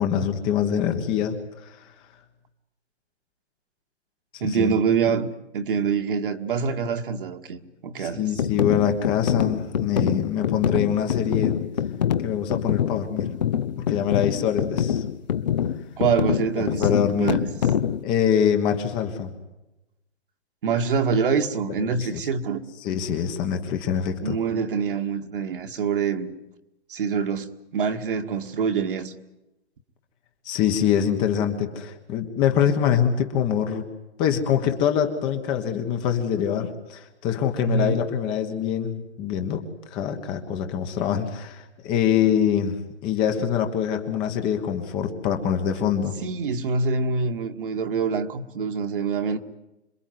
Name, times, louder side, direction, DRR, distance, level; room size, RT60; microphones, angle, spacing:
voice 1, 0.0-1.4 1.6-1.9 4.3-4.8 8.0-11.6 12.2-13.3 13.8-15.0 16.8-17.4 18.0-19.3 21.8-22.2 22.8-24.4 30.4-33.9 34.2-39.6 39.9-42.8 43.0-46.2, left 8 dB, 15° left, 1.3 m, -24 dB
voice 2, 4.4-8.3 16.0-17.5 20.6-22.6 24.2-26.3 26.9-29.1 37.6-38.0 46.2-49.4, right 5 dB, 50° right, 2.1 m, -25 dB
sound 1, 8.4-18.0, left 9 dB, 40° left, 0.9 m, -25 dB
27.0 x 23.0 x 9.5 m
hypercardioid pair, 170°, 34 cm